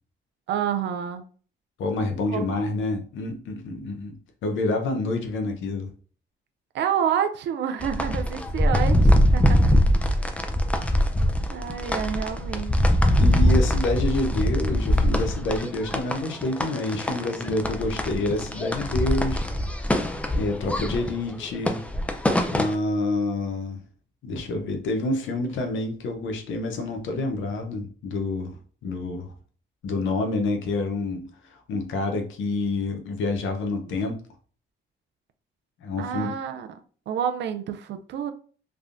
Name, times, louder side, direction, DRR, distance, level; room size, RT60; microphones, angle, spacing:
voice 1, 0.5-1.2 2.3-2.5 6.7-9.6 10.2-10.5 11.5-12.7 33.9-34.0 36.0-36.7 37.1-38.3, right 8 dB, 65° right, 0.4 m, -28 dB
voice 2, 1.8-4.1 4.4-5.9 13.2-19.5 20.3-21.8 22.5-23.8 24.2-29.3 29.8-31.3 31.5-34.2 35.8-36.4, left 2 dB, 75° left, 0.7 m, -28 dB
sound 1, 7.8-22.8, equal, 5° left, 0.4 m, -23 dB
3.4 x 2.1 x 2.5 m
cardioid pair, 90°, 20 cm